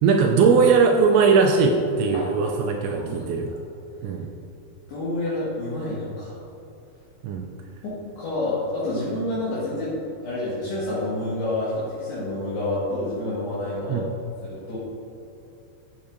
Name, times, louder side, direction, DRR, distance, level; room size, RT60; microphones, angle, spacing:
voice 1, 0.0-3.5 4.0-4.3 7.2-7.5 13.9-14.1, right 5 dB, 90° right, 2 dB, 2.5 m, -19 dB
voice 2, 2.9-3.6 4.9-6.4 7.8-10.0 10.2-14.0 14.4-14.8, left 1 dB, 65° left, -11 dB, 3.5 m, -28 dB
11.5 x 8.0 x 2.6 m, 2.8 s
omnidirectional pair, 5.7 m